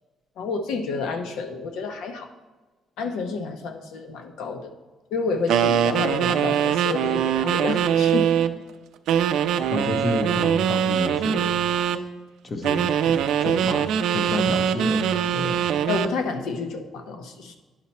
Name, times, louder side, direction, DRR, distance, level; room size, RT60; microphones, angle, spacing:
voice 1, 0.4-2.3 3.0-4.7 5.1-8.3 15.9-17.6, left 4 dB, 85° left, 6 dB, 0.9 m, -29 dB
sound 1, 5.5-8.6 9.1-12.0 12.6-16.2, right 9 dB, 80° right, 0.5 m, -22 dB
voice 2, 9.7-11.6 12.4-13.1 13.4-13.8 14.1-15.7, left 2 dB, 30° left, 6 dB, 0.9 m, -30 dB
10.5 x 5.8 x 4.2 m, 1.3 s
cardioid pair, 140°, 0 cm